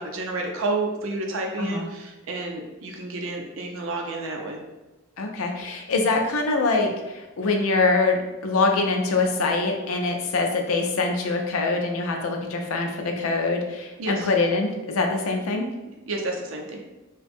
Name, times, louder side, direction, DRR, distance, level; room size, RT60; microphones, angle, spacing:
voice 1, 0.0-4.6 14.0-14.3 16.1-16.8, right 2 dB, 70° right, 1 dB, 0.5 m, -30 dB
voice 2, 5.2-15.7, left 3 dB, 90° left, 3 dB, 0.4 m, -24 dB
2.5 x 2.2 x 2.6 m, 1.1 s
head